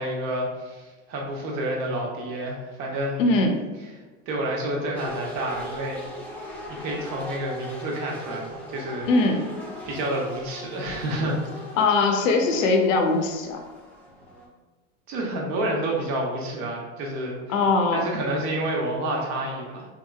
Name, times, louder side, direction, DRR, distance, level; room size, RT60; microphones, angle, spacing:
voice 1, 0.0-3.3 4.3-6.0 6.8-9.1 9.9-11.7 15.1-17.6 17.9-19.9, right 1 dB, 45° right, -1 dB, 1.0 m, -29 dB
voice 2, 3.2-3.5 9.1-9.5 11.8-13.6 17.5-18.0, left 3 dB, 75° left, 4 dB, 0.7 m, -21 dB
sound 1, 4.9-14.5, equal, 5° left, 0.6 m, -39 dB
3.7 x 2.8 x 2.3 m, 1.3 s
hypercardioid pair, 110°, 39 cm